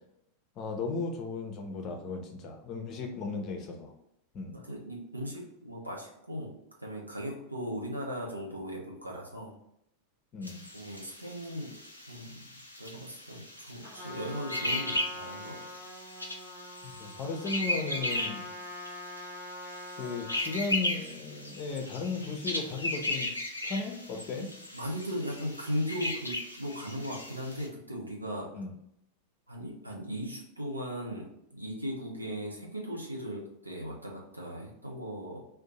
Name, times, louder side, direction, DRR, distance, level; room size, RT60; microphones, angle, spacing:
voice 1, 0.6-3.9 4.3-4.5 10.3-10.6 16.8-18.4 20.0-23.3 23.6-24.5 28.5-28.7, left 4 dB, 35° left, 3 dB, 0.6 m, -35 dB
voice 2, 4.5-9.5 10.7-11.8 12.1-12.5 12.8-15.6 24.4-28.6 29.5-35.4, equal, 85° right, -1 dB, 0.7 m, -38 dB
sound 1, 10.4-27.7, left 1 dB, 85° left, 0.4 m, -37 dB
Trumpet, 13.8-20.6, left 2 dB, 30° right, 1.0 m, -45 dB
2.6 x 2.1 x 4.0 m, 0.79 s
figure-of-eight pair, 90°, 0 cm